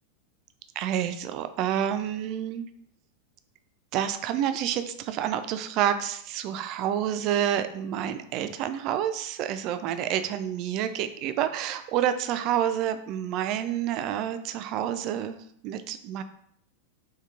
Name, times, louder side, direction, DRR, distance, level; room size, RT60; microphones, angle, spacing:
voice 1, 0.8-2.6 3.9-16.2, right 10 dB, 40° right, 10 dB, 0.3 m, -28 dB
4.1 x 3.5 x 2.4 m, 0.70 s
figure-of-eight pair, 90°, 0 cm